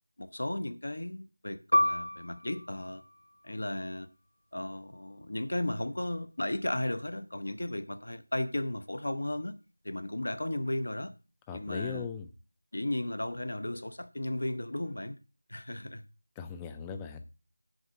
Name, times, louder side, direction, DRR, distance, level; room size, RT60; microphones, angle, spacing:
voice 1, 0.2-3.0 3.4-4.1 4.5-9.6 9.8-11.1 11.5-12.1 12.7-15.2 15.5-16.0, left 1 dB, 60° left, 0.8 m, -35 dB
Piano, 1.7-6.8 7.1-7.3 8.0-8.4, left 1 dB, 80° left, 0.4 m, -33 dB
voice 2, 11.5-12.3 16.4-17.4, left 6 dB, 10° left, 0.4 m, -39 dB
6.4 x 4.3 x 6.0 m
figure-of-eight pair, 170°, 0 cm